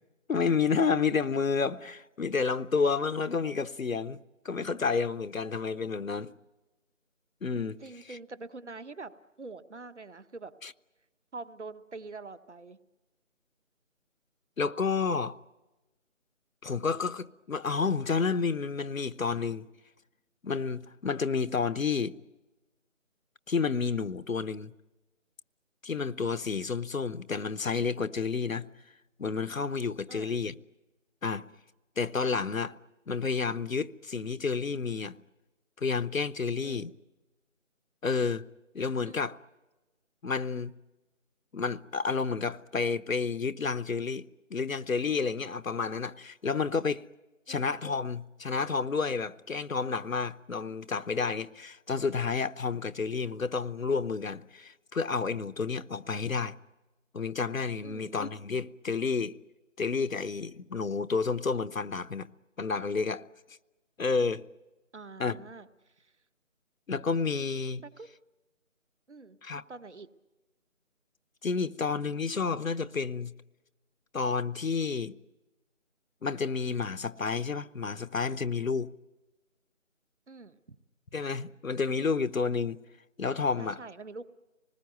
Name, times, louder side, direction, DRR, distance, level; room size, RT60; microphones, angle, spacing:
voice 1, 0.3-4.2 4.4-6.3 7.4-7.8 8.1-8.2 10.6-10.7 14.6-15.4 16.6-19.7 20.4-22.1 23.5-24.7 25.8-28.7 29.2-30.5 31.2-31.5 32.0-32.7 33.1-35.1 35.8-36.9 38.0-38.4 38.7-39.4 40.2-40.7 41.5-44.2 44.5-47.1 47.5-56.5 57.1-59.4 59.8-62.3 62.6-63.2 64.0-64.4 65.2-65.4 66.9-67.8 69.4-69.6 71.4-73.3 74.1-75.1 76.2-78.9 81.1-82.8 83.2-83.8, left 5 dB, 85° left, 0.9 m, -30 dB
voice 2, 7.8-9.1 9.4-10.5 11.3-12.8 30.1-30.4 36.6-36.9 39.0-39.3 47.5-47.7 57.8-58.2 64.9-66.1 67.8-68.1 69.1-69.4 69.7-70.1 80.3-80.6 83.6-84.2, right 3 dB, 60° right, 1.2 m, -45 dB
25.5 x 20.0 x 9.3 m
figure-of-eight pair, 160°, 39 cm